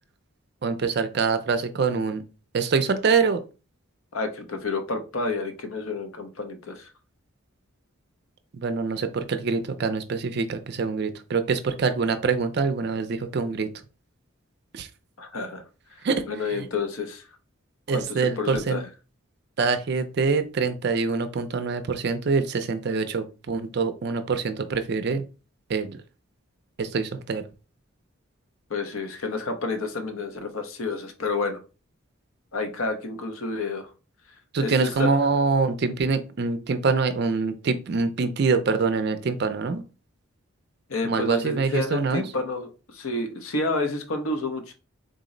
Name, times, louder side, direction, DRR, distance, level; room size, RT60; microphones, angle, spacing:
voice 1, 0.6-2.2 2.5-3.4 8.5-13.7 14.7-14.9 16.0-16.2 16.5-16.7 17.9-18.8 19.6-25.2 25.7-25.9 26.8-27.4 34.5-39.8 41.0-42.2, right 4 dB, 50° right, 9 dB, 0.4 m, -25 dB
voice 2, 4.1-6.9 15.2-15.6 15.9-16.0 16.3-17.3 17.9-18.9 28.7-31.6 32.5-33.9 34.6-35.1 40.9-44.7, left 3 dB, 80° left, 7 dB, 0.7 m, -30 dB
3.7 x 2.0 x 3.7 m, 0.33 s
head